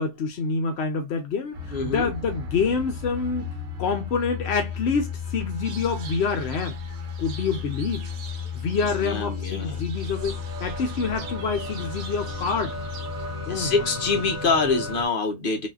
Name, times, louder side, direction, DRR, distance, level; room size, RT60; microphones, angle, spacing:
voice 1, 0.0-6.8 7.2-8.1 8.5-12.8 13.5-13.7, left 5 dB, 80° left, 0.5 m, -27 dB
sound 1, 1.5-15.0, left 4 dB, 55° right, 1.3 m, -34 dB
voice 2, 1.7-2.1 9.0-9.8 13.5-15.7, left 4 dB, 40° left, 0.8 m, -25 dB
sound 2, 5.6-13.4, right 5 dB, 70° right, 1.4 m, -45 dB
4.0 x 2.6 x 2.3 m
omnidirectional pair, 2.0 m